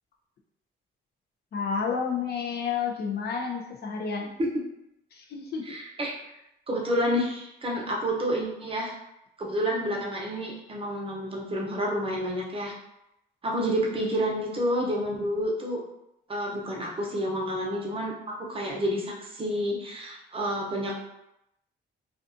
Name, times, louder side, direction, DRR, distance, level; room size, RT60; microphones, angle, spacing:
voice 1, 1.5-4.3 5.1-5.7, left 6 dB, 55° left, 1 dB, 0.6 m, -30 dB
voice 2, 5.6-6.2 6.7-8.9 9.4-12.7 13.4-15.8 16.3-20.9, equal, 25° right, -2 dB, 0.7 m, -29 dB
2.5 x 2.3 x 2.6 m, 0.84 s
cardioid pair, 90°, 20 cm